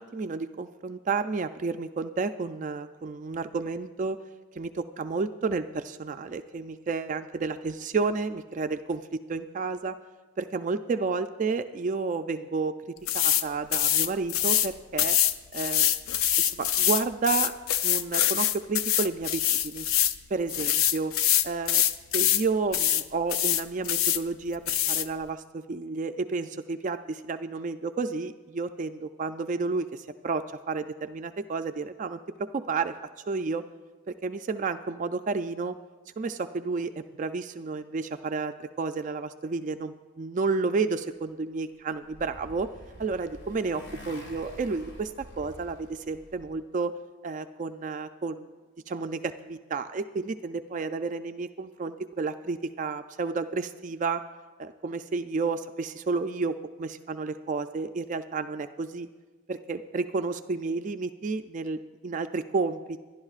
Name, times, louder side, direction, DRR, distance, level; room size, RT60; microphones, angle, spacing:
voice 1, 0.0-4.2 4.6-10.0 10.4-15.2 15.5-15.9 16.4-17.5 17.8-19.9 20.3-21.1 21.4-21.9 22.1-32.9 33.3-33.6 34.2-35.8 36.2-42.7 43.0-46.9 47.2-48.5 48.9-54.2 54.6-59.1 59.5-63.0, right 4 dB, 35° right, 8 dB, 0.3 m, -31 dB
sound 1, 13.1-13.4 13.7-14.7 15.0-20.2 20.5-22.4 22.7-23.0 23.3-24.2 24.7-25.1, left 11 dB, 80° left, 0.5 m, -24 dB
Motorcycle, 41.6-46.6, equal, 50° left, 1.9 m, -47 dB
25.5 x 11.5 x 2.4 m, 1.3 s
head